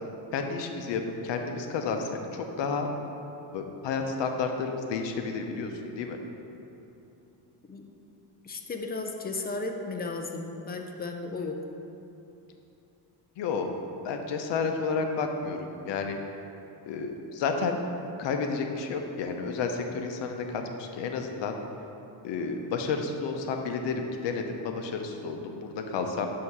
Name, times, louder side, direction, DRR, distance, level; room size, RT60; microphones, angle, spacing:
voice 1, 0.3-2.9 3.5-6.2 13.4-13.7 14.0-16.2 16.9-17.8 18.2-21.6 22.2-26.3, left 4 dB, 65° left, 4 dB, 0.7 m, -31 dB
voice 2, 8.4-11.6, left 3 dB, 20° left, 3 dB, 0.4 m, -34 dB
6.3 x 2.8 x 5.5 m, 2.9 s
cardioid pair, 110°, 47 cm